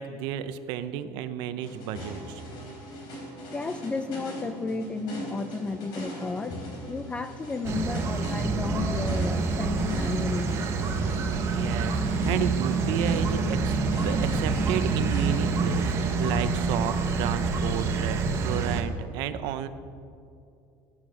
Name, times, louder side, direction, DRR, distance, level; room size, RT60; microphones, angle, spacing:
voice 1, 0.0-2.4 11.5-19.7, right 10 dB, 55° right, 12 dB, 0.7 m, -32 dB
sound 1, 1.6-16.7, equal, 55° left, 3.7 m, -41 dB
voice 2, 3.5-10.5, left 4 dB, 10° left, 12 dB, 0.4 m, -33 dB
sound 2, 7.6-18.8, right 4 dB, 30° right, 1.1 m, -27 dB
17.0 x 8.7 x 6.2 m, 2.5 s
cardioid pair, 175°, 9 cm